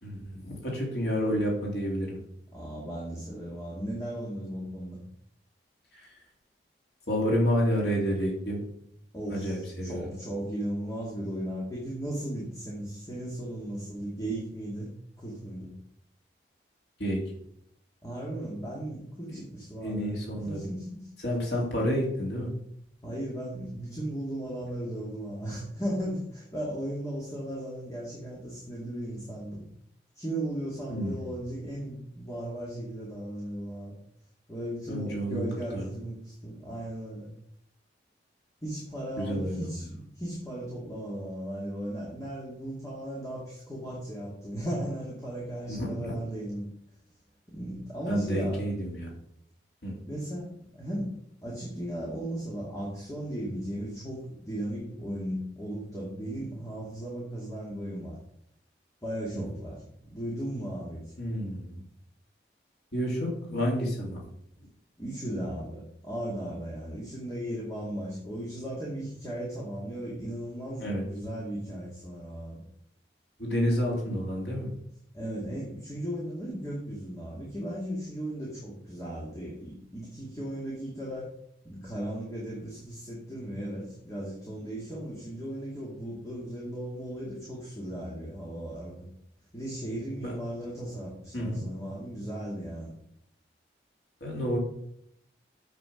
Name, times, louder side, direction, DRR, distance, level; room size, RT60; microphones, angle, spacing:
voice 1, 0.0-2.2 5.9-6.1 7.1-8.6 9.3-10.1 17.0-17.2 19.3-19.4 19.8-20.7 21.2-22.5 30.9-31.3 34.9-35.4 35.7-35.9 39.2-39.7 45.7-46.2 48.1-49.1 49.8-49.9 59.3-59.4 61.2-61.8 62.9-64.2 70.8-71.0 73.4-74.7 90.2-90.4 91.3-91.6 94.2-94.6, equal, 75° left, -2 dB, 3.1 m, -29 dB
voice 2, 2.5-5.0 9.1-14.9 15.2-15.7 18.0-20.2 20.5-21.1 23.0-29.6 30.1-33.9 34.5-37.3 38.6-46.7 47.5-48.7 50.1-58.2 59.0-61.2 65.0-72.6 75.1-81.3 81.6-89.1 89.5-92.9, right 1 dB, 20° left, -5 dB, 2.5 m, -36 dB
8.5 x 7.6 x 5.2 m, 0.71 s
head